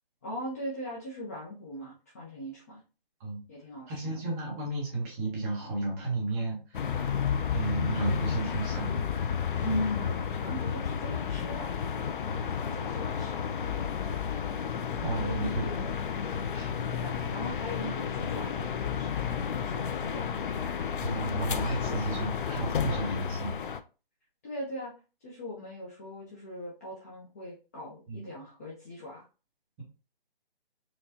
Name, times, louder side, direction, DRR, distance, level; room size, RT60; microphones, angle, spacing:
voice 1, 0.2-2.8 3.5-4.2 9.6-11.7 12.7-13.4 15.2-15.9 16.9-19.3 19.6-20.4 24.4-24.9 25.2-29.2, equal, 15° left, -8 dB, 0.6 m, -39 dB
voice 2, 3.9-7.1 7.5-9.0 15.0-15.8 16.5-16.7 19.2-19.3 21.0-23.5 28.1-28.2, right 2 dB, 15° right, -3 dB, 1.0 m, -33 dB
sound 1, 6.7-23.8, left 7 dB, 60° left, 0.4 m, -32 dB
4.4 x 2.3 x 2.7 m, 0.33 s
hypercardioid pair, 155°, 29 cm